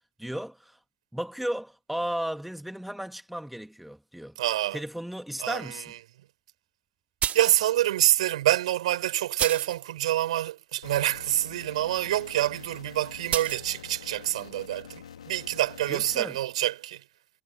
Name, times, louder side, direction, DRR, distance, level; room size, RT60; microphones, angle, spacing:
voice 1, 0.2-0.8 1.1-4.4 4.7-5.9 15.9-16.4, equal, ahead, 2.2 m, -34 dB
voice 2, 4.4-4.8 5.4-5.9 7.3-17.0, right 14 dB, 80° right, 4.9 m, -26 dB
sound 1, 7.2-7.6 8.5-8.6 9.4-9.8 13.3-13.6, right 10 dB, 40° right, 0.5 m, -29 dB
sound 2, 10.8-16.2, left 8 dB, 85° left, 2.6 m, -46 dB
hypercardioid pair, 75°, 3 cm